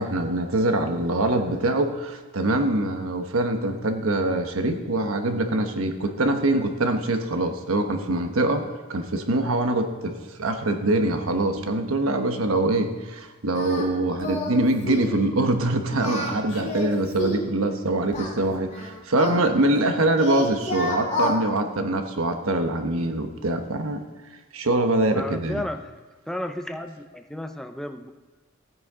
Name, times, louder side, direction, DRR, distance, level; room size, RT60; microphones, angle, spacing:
voice 1, 0.0-24.0 24.5-25.6, right 2 dB, 85° right, 6 dB, 1.1 m, -24 dB
Singing, 13.5-13.9 14.2-14.6 14.9-15.2 15.9-17.5 18.1-19.9 20.2-21.4, left 2 dB, 35° left, 2.3 m, -30 dB
voice 2, 25.1-25.8 26.3-28.1, left 1 dB, 5° left, 7 dB, 0.5 m, -33 dB
15.5 x 9.2 x 3.7 m, 1.3 s
head